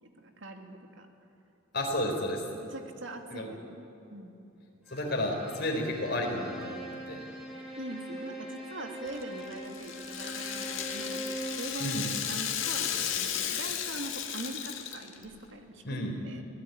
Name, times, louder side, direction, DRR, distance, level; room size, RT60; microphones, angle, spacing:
voice 1, 0.0-1.1 2.7-4.3 7.8-16.0 16.2-16.4, right 2 dB, 65° right, 4 dB, 2.3 m, -42 dB
voice 2, 1.7-2.4 3.3-3.5 4.9-6.8 7.1-7.2 11.8-12.1 15.8-16.2, left 1 dB, 55° left, 1 dB, 4.5 m, -31 dB
Bowed string instrument, 4.9-11.7, right 1 dB, 5° right, 5.6 m, -42 dB
Rattle (instrument), 9.1-15.3, left 9 dB, 75° left, 2.0 m, -34 dB
24.5 x 17.5 x 9.5 m, 2.9 s
head